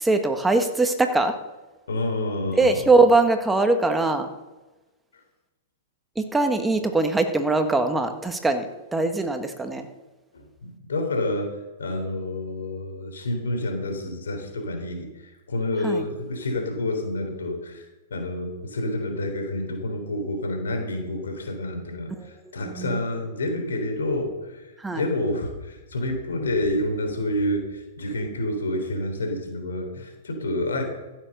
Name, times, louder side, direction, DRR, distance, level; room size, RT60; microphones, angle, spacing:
voice 1, 0.0-1.3 2.6-4.3 6.1-9.9 15.8-16.0 22.2-22.3 22.6-23.0 24.8-25.0, right 3 dB, 10° right, 6 dB, 1.5 m, -22 dB
voice 2, 1.9-2.8 5.1-5.2 10.3-11.5 11.8-30.8, left 1 dB, 85° left, 4 dB, 3.6 m, -29 dB
15.0 x 7.3 x 6.7 m, 1.1 s
hypercardioid pair, 120°, 0 cm